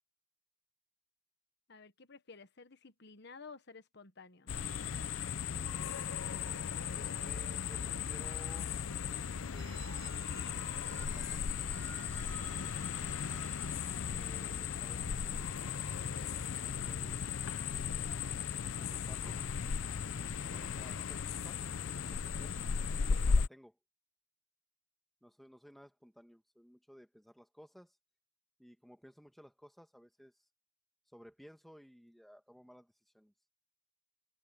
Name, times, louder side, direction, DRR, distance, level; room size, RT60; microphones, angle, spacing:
voice 1, 1.7-4.5, left 4 dB, 55° left, 1.3 m, -53 dB
sound 1, 4.5-23.5, left 6 dB, 80° left, 0.6 m, -36 dB
voice 2, 6.9-8.8 9.4-9.9 10.9-11.4 14.2-15.8 16.1-17.2 18.8-19.4 20.0-21.6 22.0-22.5 23.1-23.8 25.2-28.0 28.6-30.3 31.1-33.3, equal, ahead, 2.3 m, -57 dB
Telephone, 9.6-15.3, right 6 dB, 65° right, 6.8 m, -55 dB
head